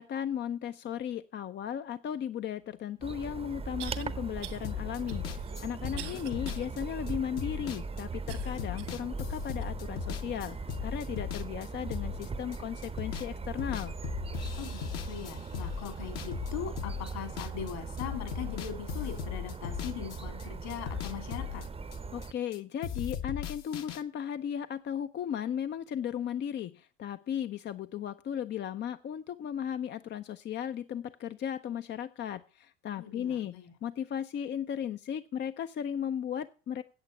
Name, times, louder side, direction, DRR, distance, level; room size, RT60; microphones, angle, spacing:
voice 1, 0.0-13.9 22.1-36.8, left 9 dB, 30° left, 11 dB, 0.6 m, -36 dB
sound 1, 2.8-2.9 3.8-4.0 4.4-4.7 5.1-6.7 7.1-7.2 8.3-9.0 9.6-9.7 10.5-10.6, right 13 dB, 75° right, 1.6 m, -45 dB
sound 2, 3.0-22.3, right 4 dB, 15° right, 0.8 m, -40 dB
sound 3, 4.6-12.6 12.8-13.3 13.6-17.7 18.0-20.5 20.7-22.6 22.8-24.0, left 9 dB, 45° left, 1.1 m, -38 dB
voice 2, 14.6-21.6 33.0-33.7, left 9 dB, 65° left, 6 dB, 3.5 m, -40 dB
8.9 x 8.1 x 7.1 m, 0.37 s
hypercardioid pair, 75°, 35 cm